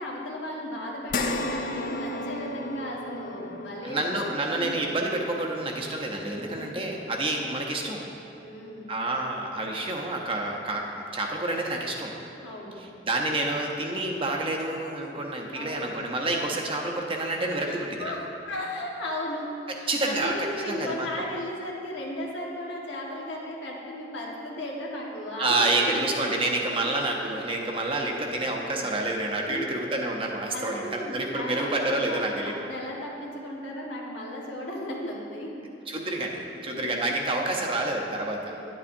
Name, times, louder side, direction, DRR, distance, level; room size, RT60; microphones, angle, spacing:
voice 1, 0.0-4.8 6.4-6.9 8.4-8.9 12.4-12.8 15.5-16.0 17.6-26.5 26.8-26.9 29.4-29.8 30.5-35.5 36.7-37.1 38.4-38.7, left 1 dB, 90° left, -2 dB, 1.3 m, -36 dB
sound 1, 1.1-9.7 10.2-10.3 11.7-11.8, left 2 dB, 45° left, 0.4 m, -36 dB
voice 2, 3.8-8.1 8.9-12.1 12.8-18.1 19.7-20.3 20.7-21.3 25.4-32.6 35.9-38.4, right 2 dB, 30° right, 0 dB, 0.7 m, -28 dB
10.0 x 8.4 x 2.6 m, 2.8 s
head